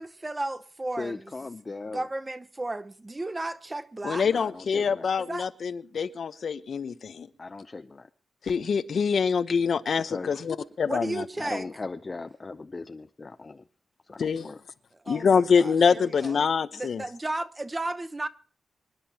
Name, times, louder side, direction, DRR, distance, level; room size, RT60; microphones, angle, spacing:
voice 1, 0.0-1.3 1.9-4.3 5.3-5.5 10.8-11.7 15.0-16.4 16.7-18.3, right 2 dB, 15° right, 0.8 m, -34 dB
voice 2, 1.0-2.1 4.2-5.1 7.4-8.1 10.1-10.3 11.4-13.6 14.0-14.6, left 3 dB, 25° left, 0.5 m, -38 dB
voice 3, 4.0-7.3 8.4-11.2 14.2-14.5 15.1-17.0, left 6 dB, 55° left, 0.8 m, -25 dB
25.5 x 11.0 x 2.9 m
wide cardioid pair, 155°, 0 cm